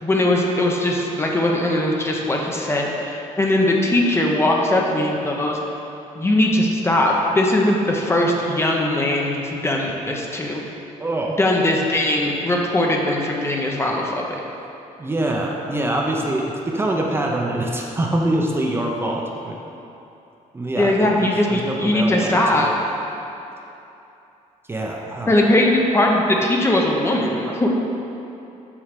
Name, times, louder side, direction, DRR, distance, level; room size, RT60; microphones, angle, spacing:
voice 1, 0.0-5.6 6.1-10.6 11.4-14.4 20.7-22.7 25.3-27.8, left 1 dB, 20° left, 0 dB, 0.7 m, -20 dB
voice 2, 11.0-11.4 15.0-19.6 20.5-22.7 24.7-25.3, right 1 dB, 15° right, -1 dB, 0.7 m, -24 dB
7.4 x 4.6 x 5.1 m, 2.8 s
cardioid pair, 135°, 14 cm